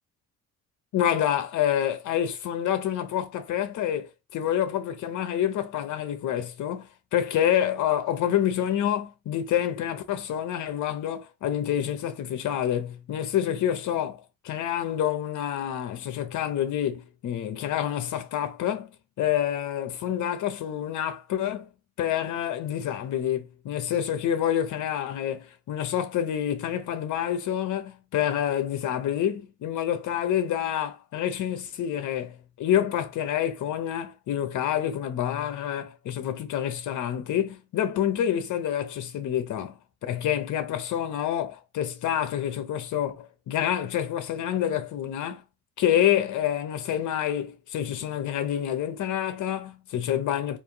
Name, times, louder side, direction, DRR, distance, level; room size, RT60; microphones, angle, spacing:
voice 1, 0.9-18.9 19.2-21.7 22.0-45.4 45.8-50.6, left 10 dB, 75° left, 0.9 m, -27 dB
3.5 x 2.6 x 4.6 m
cardioid pair, 90°, 30 cm